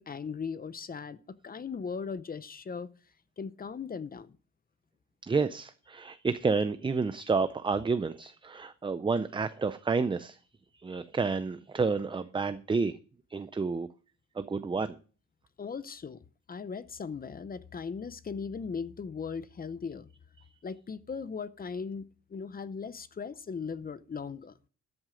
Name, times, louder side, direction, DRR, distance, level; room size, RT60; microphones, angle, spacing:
voice 1, 0.0-2.9 3.4-4.4 15.6-20.1 20.6-24.5, left 5 dB, 30° left, 0.7 m, -38 dB
voice 2, 5.3-10.4 10.8-12.9 13.3-13.9 14.4-15.0, right 4 dB, 15° right, 0.4 m, -30 dB
13.0 x 8.0 x 5.0 m
wide cardioid pair, 150°, 31 cm